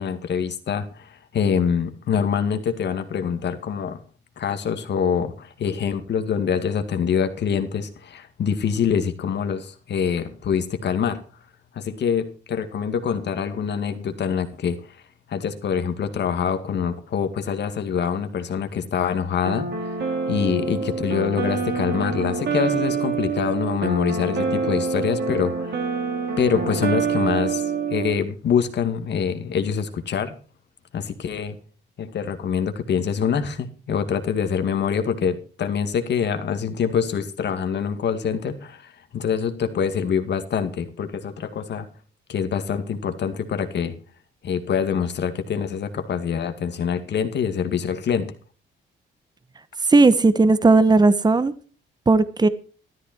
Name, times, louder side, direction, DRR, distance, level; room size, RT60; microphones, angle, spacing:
voice 1, 0.0-4.0 4.4-11.2 11.7-14.8 15.3-19.9 20.3-25.8 26.4-27.6 27.9-30.3 30.9-31.6 32.0-41.9 42.3-44.0 44.4-48.3, left 7 dB, 60° left, 2.2 m, -25 dB
sound 1, 19.4-28.2, right 5 dB, 60° right, 3.2 m, -26 dB
voice 2, 49.9-51.5 52.1-52.5, right 3 dB, 20° right, 1.1 m, -16 dB
13.5 x 13.0 x 4.5 m
cardioid pair, 90°, 20 cm